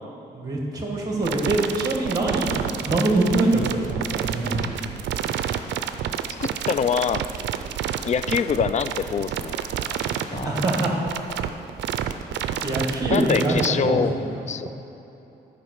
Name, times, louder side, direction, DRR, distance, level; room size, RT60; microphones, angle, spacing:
voice 1, 0.3-4.8 10.3-10.9 12.3-14.3, right 2 dB, 20° right, -1 dB, 1.7 m, -24 dB
sound 1, 1.2-13.7, right 10 dB, 90° right, 0.4 m, -28 dB
voice 2, 6.3-7.3 8.0-10.0 10.3-10.5 13.1-14.1 14.5-14.7, left 7 dB, 40° left, 13 dB, 0.4 m, -25 dB
9.7 x 5.0 x 6.5 m, 3.0 s
cardioid pair, 100°, 18 cm